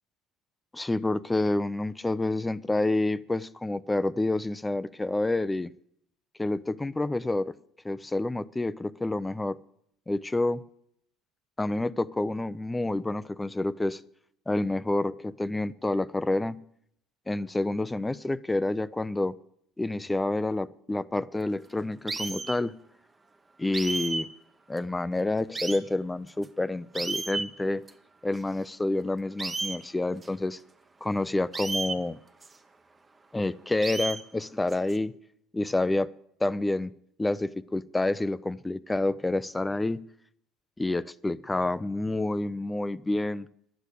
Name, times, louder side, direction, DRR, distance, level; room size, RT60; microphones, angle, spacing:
voice 1, 0.7-5.7 6.4-7.6 7.8-9.6 10.1-10.6 11.6-14.0 14.5-16.6 17.3-19.3 19.8-22.8 23.6-24.3 24.7-27.8 28.2-30.6 31.0-32.2 33.3-35.1 35.5-36.1 36.4-36.9 37.2-40.0 40.8-43.5, left 2 dB, 10° left, 0.4 m, -28 dB
sound 1, 22.1-22.6 23.7-24.2 24.8-24.9 25.5-25.8 26.4-26.5 26.9-27.5 27.9-28.0 28.3-28.4 29.4-29.8 30.2-30.3 31.5-32.0 32.4-32.5 33.8-34.2 34.7-35.0, right 3 dB, 20° right, 0.9 m, -32 dB
11.0 x 8.3 x 8.3 m
supercardioid pair, 90°, 0 cm